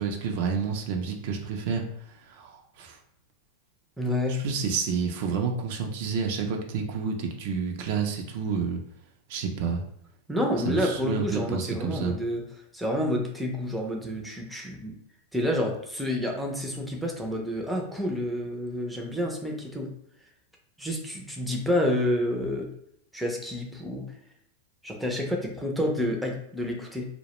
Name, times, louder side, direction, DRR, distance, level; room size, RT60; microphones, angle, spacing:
voice 1, 0.0-3.0 4.3-8.8 9.3-9.8 10.6-12.2, right 5 dB, 65° right, 3 dB, 0.4 m, -29 dB
voice 2, 4.0-4.4 10.3-12.4 12.7-14.9 15.3-19.9 20.8-22.7 23.1-24.0 24.8-27.1, left 1 dB, ahead, -1 dB, 0.4 m, -29 dB
2.2 x 2.1 x 2.9 m, 0.73 s
supercardioid pair, 135°, 0 cm